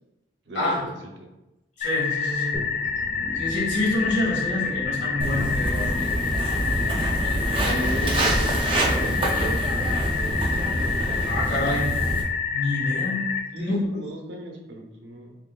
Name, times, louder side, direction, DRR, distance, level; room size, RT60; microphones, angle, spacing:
voice 1, 0.5-0.9 1.2-1.3 7.6-9.9 13.5-15.4, right 1 dB, 65° right, 2 dB, 0.6 m, -35 dB
voice 2, 1.8-2.6 3.3-6.1 11.2-11.9 12.5-13.3 13.5-13.8, left 1 dB, 75° left, -4 dB, 1.4 m, -27 dB
sound 1, 1.8-13.4, left 6 dB, 40° left, 0.4 m, -28 dB
sound 2, 2.5-9.5, equal, 5° right, 0.9 m, -38 dB
Walk footsteps, 5.2-12.2, right 1 dB, 30° right, 0.5 m, -26 dB
4.9 x 2.5 x 2.3 m, 0.96 s
head